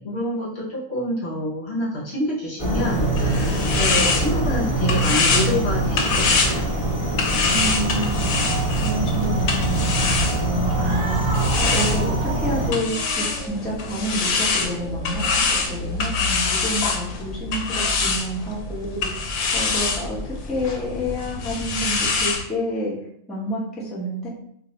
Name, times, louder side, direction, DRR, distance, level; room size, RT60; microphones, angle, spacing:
voice 1, 0.0-6.7, left 1 dB, 55° left, -5 dB, 1.0 m, -27 dB
sound 1, 2.6-12.7, right 2 dB, 30° left, 0.8 m, -23 dB
sound 2, 2.9-10.8 11.3-22.4, left 4 dB, 90° left, 1.0 m, -25 dB
voice 2, 7.4-8.3 8.8-22.9 23.3-24.3, equal, ahead, -8 dB, 0.7 m, -29 dB
Cat, 10.6-16.2, right 2 dB, 70° right, 1.0 m, -36 dB
2.6 x 2.3 x 4.0 m, 0.69 s
omnidirectional pair, 1.4 m